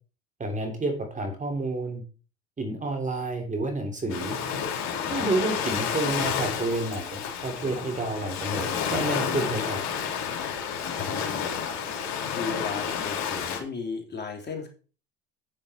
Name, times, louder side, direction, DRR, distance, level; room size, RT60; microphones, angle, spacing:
voice 1, 0.4-2.0 2.6-4.4 5.1-9.8, right 2 dB, 25° right, 4 dB, 3.3 m, -30 dB
Ocean, 4.1-13.6, left 7 dB, 60° left, 3.2 m, -30 dB
voice 2, 5.2-5.6 11.0-11.6 12.3-14.7, left 5 dB, 35° left, 1 dB, 3.6 m, -36 dB
9.2 x 8.7 x 4.4 m, 0.37 s
supercardioid pair, 90°, 31 cm